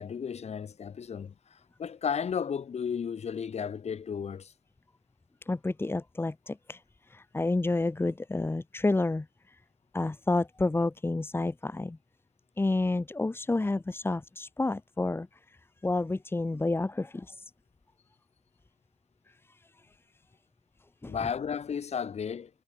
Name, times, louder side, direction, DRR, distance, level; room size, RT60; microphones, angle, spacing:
voice 1, 0.0-4.5 21.1-22.5, left 7 dB, 40° left, 7.2 m, -34 dB
voice 2, 5.5-6.8 7.1-9.6 9.9-12.0 12.6-17.5 21.0-21.1, left 2 dB, 15° left, 2.7 m, -30 dB
cardioid pair, 110°, 17 cm